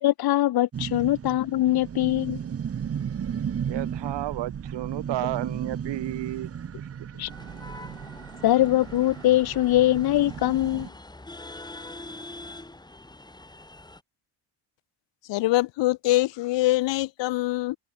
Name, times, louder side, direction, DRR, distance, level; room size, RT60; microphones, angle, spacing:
voice 1, 0.0-2.4 7.2-7.3 8.4-10.9, left 14 dB, 60° left, 0.9 m, -22 dB
sound 1, 0.7-10.9, right 8 dB, 35° right, 1.4 m, -35 dB
voice 2, 3.7-6.5 6.8-6.9, right 15 dB, 75° right, 2.7 m, -32 dB
sound 2, 7.3-14.0, left 2 dB, 10° left, 6.5 m, -44 dB
voice 3, 15.3-17.8, left 18 dB, 80° left, 1.1 m, -24 dB
cardioid pair, 145°, 43 cm